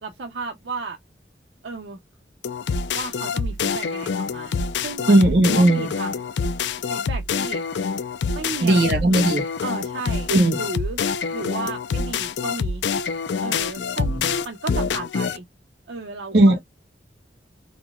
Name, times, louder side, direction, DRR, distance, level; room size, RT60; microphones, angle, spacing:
voice 1, 0.0-1.0 1.6-2.0 2.9-4.5 4.8-5.2 5.6-6.3 6.9-7.6 8.3-9.3 9.6-10.3 10.5-11.0 11.3-12.8 13.4-15.4 15.9-16.6, right 3 dB, 90° right, 0.7 m, -34 dB
sound 1, 2.4-15.4, left 5 dB, 80° left, 0.4 m, -26 dB
voice 2, 5.1-5.9 8.6-9.4 10.3-10.6 14.0-14.3 16.3-16.6, right 1 dB, 70° right, 1.1 m, -17 dB
4.2 x 2.1 x 2.3 m
head